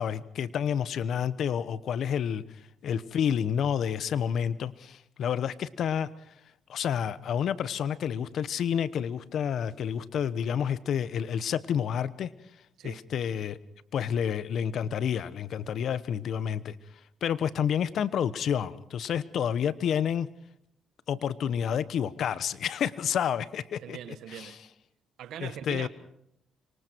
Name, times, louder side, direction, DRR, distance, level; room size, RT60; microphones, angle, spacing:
voice 1, 0.0-6.1 6.7-12.3 12.8-13.6 13.9-16.8 17.2-20.3 21.1-24.0 24.3-24.6 25.4-25.9, left 8 dB, 65° left, 1.0 m, -29 dB
voice 2, 23.8-24.6 25.2-25.9, right 10 dB, 80° right, 1.6 m, -41 dB
26.0 x 24.0 x 4.6 m
cardioid pair, 90°, 0 cm